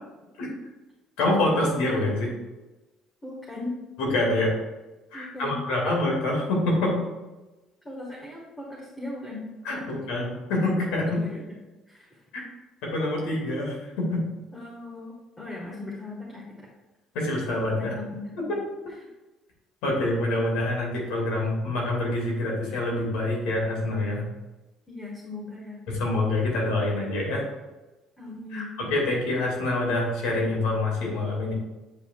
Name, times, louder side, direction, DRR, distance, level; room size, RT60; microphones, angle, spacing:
voice 1, 1.2-2.3 4.0-4.5 5.1-7.0 9.7-11.2 12.8-14.2 17.1-17.9 18.5-18.6 19.8-24.2 25.9-27.4 28.5-31.5, left 2 dB, 85° left, -2 dB, 2.2 m, -26 dB
voice 2, 3.2-3.8 5.1-5.7 7.8-9.5 9.7-10.1 11.1-11.6 11.9-12.2 14.5-16.7 17.8-18.6 18.9-19.1 24.9-25.8 28.2-28.8, left 2 dB, 20° left, -5 dB, 1.7 m, -38 dB
8.3 x 5.4 x 2.4 m, 1.1 s
supercardioid pair, 90°, 0 cm